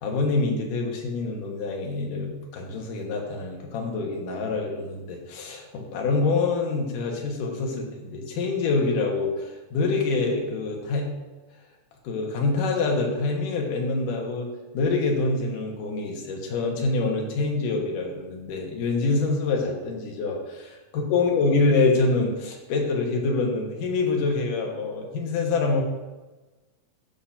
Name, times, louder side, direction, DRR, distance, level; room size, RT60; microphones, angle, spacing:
voice 1, 0.0-11.1 12.0-14.5 14.7-25.8, left 3 dB, 75° left, 1 dB, 2.8 m, -26 dB
12.0 x 7.1 x 2.6 m, 1.2 s
omnidirectional pair, 3.9 m